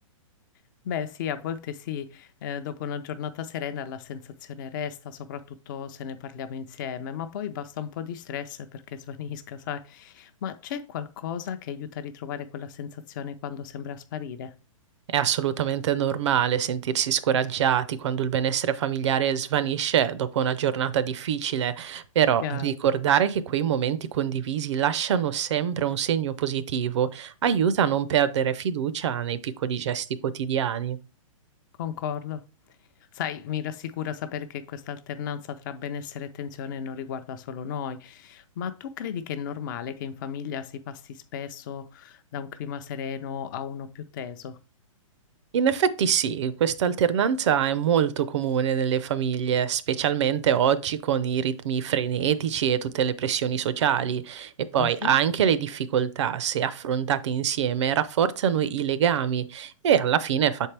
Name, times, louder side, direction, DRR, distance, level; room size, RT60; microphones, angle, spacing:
voice 1, 0.8-14.5 22.4-22.7 31.8-32.4 33.1-44.6 54.8-55.2, left 8 dB, 35° left, 0.5 m, -35 dB
voice 2, 15.1-31.0 45.5-60.7, right 9 dB, 55° right, 0.5 m, -25 dB
6.5 x 4.5 x 3.3 m
hypercardioid pair, 155°, 18 cm